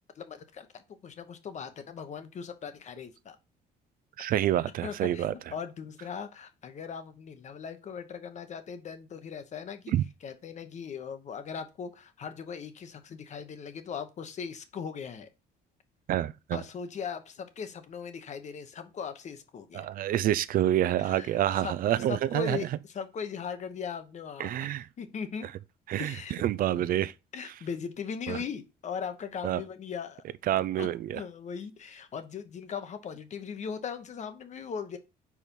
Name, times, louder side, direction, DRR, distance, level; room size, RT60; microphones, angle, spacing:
voice 1, 0.2-3.4 4.8-9.9 10.2-15.3 16.5-19.8 21.0-21.8 22.1-24.7 25.0-25.5 26.0-26.4 27.3-30.2 30.8-35.0, left 6 dB, 45° left, 1.0 m, -39 dB
voice 2, 4.2-5.3 9.9-10.0 16.1-16.6 19.7-22.7 24.4-24.9 25.9-27.1 28.3-28.4 29.4-29.6 30.5-31.2, right 12 dB, 55° right, 0.4 m, -27 dB
4.8 x 4.2 x 5.3 m
cardioid pair, 110°, 17 cm